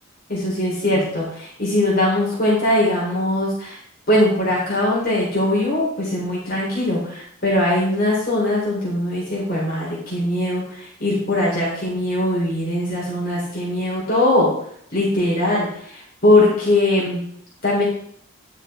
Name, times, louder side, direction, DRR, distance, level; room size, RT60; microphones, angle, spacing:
voice 1, 0.3-3.8 4.1-14.5 14.9-17.2 17.6-17.8, left 1 dB, 45° left, -6 dB, 3.5 m, -21 dB
9.7 x 6.3 x 3.6 m, 0.63 s
head